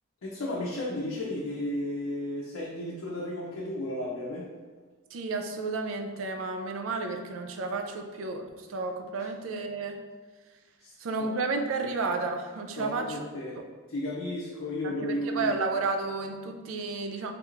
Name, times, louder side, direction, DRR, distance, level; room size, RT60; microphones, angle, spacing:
voice 1, 0.2-4.5 10.8-10.9 11.8-11.9 12.8-13.6 13.9-15.5, left 1 dB, 85° left, -4 dB, 0.5 m, -33 dB
voice 2, 5.1-10.0 11.0-13.2 13.6-13.7 14.8-17.3, right 3 dB, 75° right, 4 dB, 0.4 m, -32 dB
3.3 x 3.0 x 2.4 m, 1.4 s
head